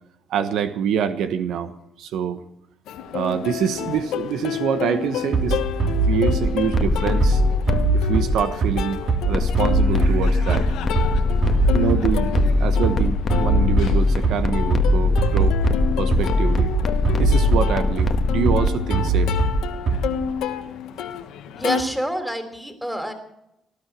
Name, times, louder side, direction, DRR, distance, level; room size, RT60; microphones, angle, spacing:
voice 1, 0.3-1.7 2.0-2.4 3.1-5.6 6.0-7.4 7.9-10.8 11.7-15.6 16.0-16.7 17.2-19.4, right 8 dB, 80° right, 10 dB, 1.2 m, -25 dB
Plucked string instrument, 2.9-21.8, left 8 dB, 90° left, 1.2 m, -30 dB
Bass drum, 5.3-20.3, right 3 dB, 65° right, 3.5 m, -22 dB
sound 1, 6.6-8.0 9.3-18.7, left 4 dB, 40° left, 1.3 m, -22 dB
voice 2, 21.5-23.1, equal, ahead, 8 dB, 3.3 m, -27 dB
19.0 x 12.0 x 6.2 m, 0.84 s
cardioid pair, 90°, 0 cm